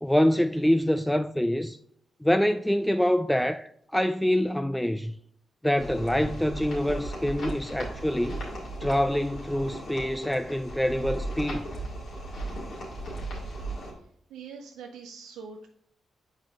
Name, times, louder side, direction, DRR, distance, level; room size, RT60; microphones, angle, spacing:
voice 1, 0.0-1.8 2.2-5.1 5.6-8.4 8.8-11.7, equal, 5° left, 0.4 m, -25 dB
sound 1, 5.8-13.9, right 1 dB, 70° left, 2.4 m, -36 dB
voice 2, 14.3-15.7, right 5 dB, 85° right, 0.6 m, -43 dB
7.3 x 4.9 x 3.5 m
supercardioid pair, 45°, 0 cm